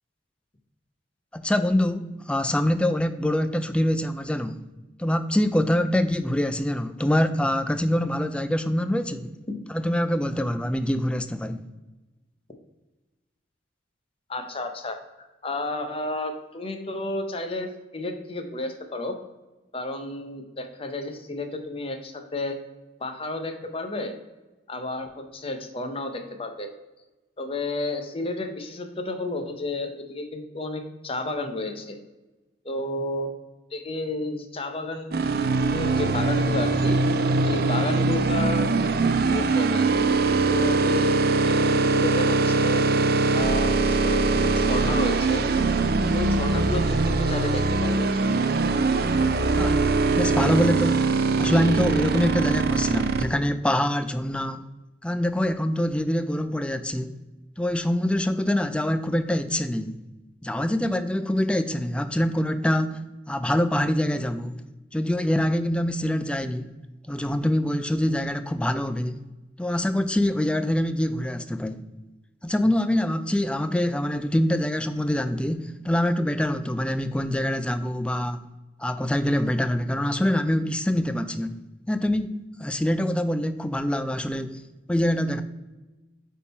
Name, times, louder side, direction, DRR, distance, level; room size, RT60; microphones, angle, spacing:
voice 1, 1.3-4.6 5.0-9.3 9.7-11.6 49.6-49.8 50.2-51.1 51.4-54.6 55.0-57.1 57.6-59.9 60.4-64.6 64.9-66.7 67.1-69.2 69.6-71.8 72.4-78.4 78.8-81.6 81.9-82.3 82.6-84.6 84.9-85.4, left 1 dB, 5° left, 0.3 m, -25 dB
voice 2, 14.3-17.7 17.9-19.2 19.7-22.6 23.0-24.1 24.7-26.7 27.4-32.0 32.6-33.3 33.7-35.2 35.7-37.0 37.4-38.9 39.3-39.8 40.4-42.8 43.3-45.4 46.1-48.1, left 2 dB, 30° left, 0.8 m, -31 dB
sound 1, 35.1-53.3, right 3 dB, 55° right, 0.5 m, -22 dB
8.4 x 3.7 x 4.2 m
head